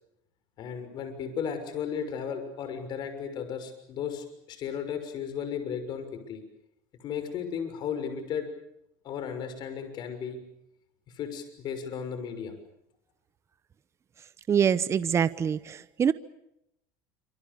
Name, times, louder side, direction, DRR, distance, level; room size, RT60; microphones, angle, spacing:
voice 1, 0.6-6.4 7.0-8.5 9.0-10.4 11.1-12.5, left 7 dB, 50° left, 9 dB, 6.4 m, -35 dB
voice 2, 14.5-16.1, right 7 dB, 30° right, 15 dB, 1.0 m, -25 dB
27.5 x 26.5 x 7.1 m, 0.81 s
supercardioid pair, 110°, 9 cm